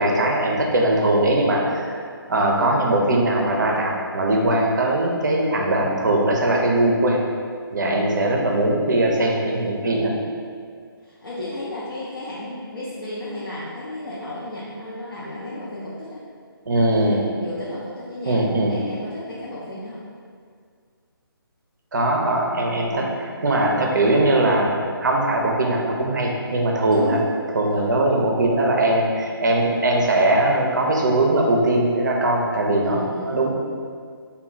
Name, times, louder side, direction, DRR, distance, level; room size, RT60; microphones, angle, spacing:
voice 1, 0.0-2.0 2.3-7.2 7.7-10.1 16.7-17.2 18.3-18.8 21.9-27.2 27.5-33.5, right 1 dB, 50° right, 0 dB, 0.5 m, -20 dB
voice 2, 7.8-8.5 9.9-10.2 11.0-16.2 16.8-20.0 22.3-22.4 23.0-23.3 26.9-27.2 27.7-27.9 32.8-33.5, left 1 dB, 60° left, -8 dB, 0.6 m, -33 dB
3.1 x 2.2 x 3.8 m, 2.1 s
figure-of-eight pair, 140°, 12 cm